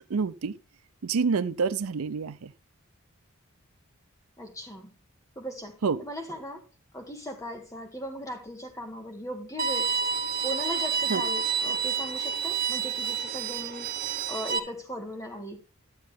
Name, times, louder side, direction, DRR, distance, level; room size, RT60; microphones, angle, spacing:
voice 1, 0.1-0.5 1.0-2.5 5.8-6.0 11.1-11.2, right 5 dB, 85° right, 0.5 m, -27 dB
voice 2, 4.4-4.9 5.3-6.6 6.9-9.9 10.4-13.9 14.3-15.6, equal, 15° left, 1.8 m, -38 dB
Bowed string instrument, 9.6-14.6, right 6 dB, 40° right, 1.0 m, -29 dB
12.5 x 7.6 x 3.5 m
head